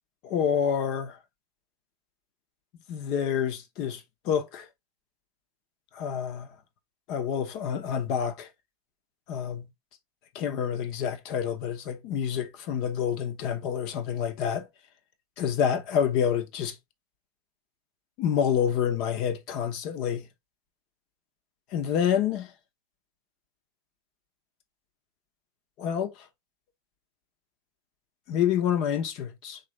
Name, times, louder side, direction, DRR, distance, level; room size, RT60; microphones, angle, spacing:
voice 1, 0.2-1.2 2.9-4.7 5.9-6.5 7.1-8.5 9.3-9.6 10.3-14.7 15.4-16.7 18.2-20.3 21.7-22.5 25.8-26.1 28.3-29.6, left 8 dB, 50° left, 0.9 m, -28 dB
4.0 x 3.1 x 3.2 m
hypercardioid pair, 125°, 0 cm